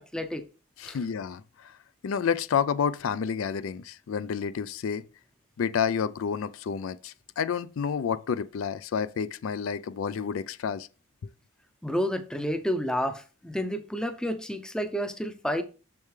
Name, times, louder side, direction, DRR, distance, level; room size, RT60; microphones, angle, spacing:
voice 1, 0.1-0.5 0.8-1.0 11.8-15.6, equal, 5° left, 0.5 m, -30 dB
voice 2, 0.8-1.7 2.0-5.0 5.6-10.9, left 7 dB, 75° left, 0.4 m, -29 dB
6.9 x 6.6 x 3.2 m
head